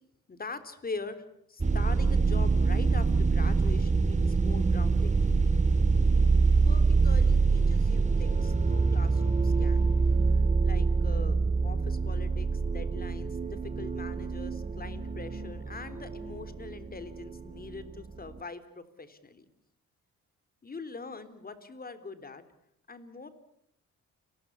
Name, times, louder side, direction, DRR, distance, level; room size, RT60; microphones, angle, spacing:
voice 1, 0.3-5.5 6.6-9.9 10.6-19.5 20.6-22.4 22.9-23.3, left 4 dB, 30° left, 11 dB, 3.5 m, -43 dB
sound 1, 1.6-18.4, right 4 dB, 25° right, 2.2 m, -25 dB
30.0 x 20.5 x 8.3 m, 0.73 s
cardioid pair, 90°, 30 cm